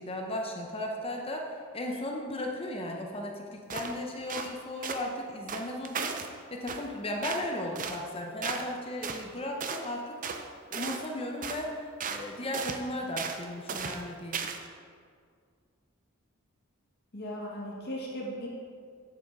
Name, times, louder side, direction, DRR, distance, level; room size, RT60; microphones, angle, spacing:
voice 1, 0.0-6.2 6.5-10.4 10.7-14.4, left 1 dB, 30° left, 1 dB, 0.8 m, -36 dB
sound 1, 3.7-4.0 4.3-4.5 4.8-5.0 5.5-6.3 6.7-6.9 7.2-7.5 7.7-8.0 8.4-8.7 9.0-9.2 9.6-9.8 10.2-10.4 10.7-11.1 11.4-11.7 12.0-12.3 12.5-12.8 13.2-13.4 13.7-14.0 14.3-14.7, right 5 dB, 40° right, 0.6 m, -35 dB
voice 2, 17.1-18.5, equal, 55° left, -3 dB, 1.8 m, -37 dB
8.8 x 7.1 x 4.8 m, 2.1 s
head